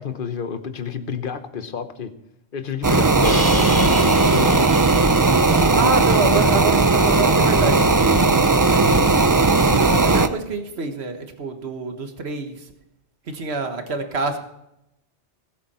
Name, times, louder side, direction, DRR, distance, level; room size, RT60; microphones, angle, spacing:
voice 1, 0.0-2.1 2.5-4.8 5.3-5.8, left 6 dB, 50° left, 10 dB, 1.2 m, -29 dB
sound 1, 2.8-10.3, right 3 dB, 25° right, 0.4 m, -17 dB
Crash cymbal, 3.2-6.3, left 1 dB, 5° left, 4.6 m, -31 dB
voice 2, 5.7-9.2 9.5-12.5 13.3-14.4, right 4 dB, 65° right, 6 dB, 1.7 m, -27 dB
19.0 x 8.4 x 4.3 m, 0.85 s
omnidirectional pair, 1.2 m